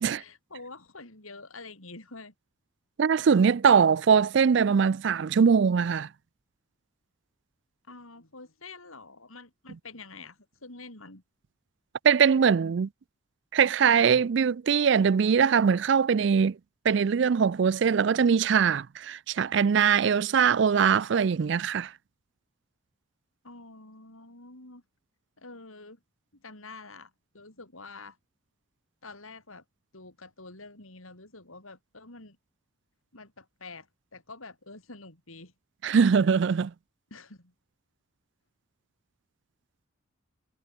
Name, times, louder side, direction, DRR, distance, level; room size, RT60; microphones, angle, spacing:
voice 1, 0.1-2.3 7.8-11.2 23.4-24.8 25.4-26.0 26.3-28.2 29.0-29.6 29.9-32.4 33.1-35.5 37.1-37.5, left 3 dB, 85° left, 5.8 m, -47 dB
voice 2, 3.0-6.1 12.0-12.9 13.5-16.6 16.9-21.9 35.8-36.7, right 6 dB, 60° right, 0.4 m, -22 dB
head